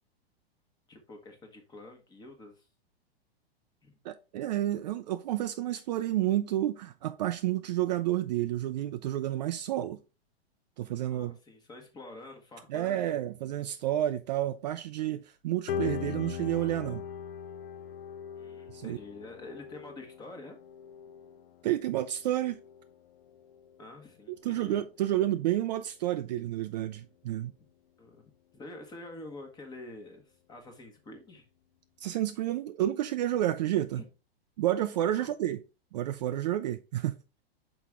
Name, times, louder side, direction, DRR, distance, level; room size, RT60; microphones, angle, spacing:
voice 1, 0.9-2.7 3.8-3.9 11.1-13.2 18.3-20.6 23.8-24.8 27.6-27.7 28.0-31.5 34.0-34.1 35.2-35.3, left 2 dB, 15° left, 1.2 m, -47 dB
voice 2, 4.0-10.0 10.8-11.4 12.7-17.0 18.7-19.0 21.6-22.6 24.3-27.5 32.0-34.0 34.6-35.6 35.9-37.2, right 13 dB, 45° right, 0.4 m, -30 dB
sound 1, 15.7-25.0 25.4-25.8 26.2-26.3 26.9-27.0, left 8 dB, 60° left, 0.6 m, -41 dB
5.8 x 4.8 x 3.6 m
hypercardioid pair, 155°, 31 cm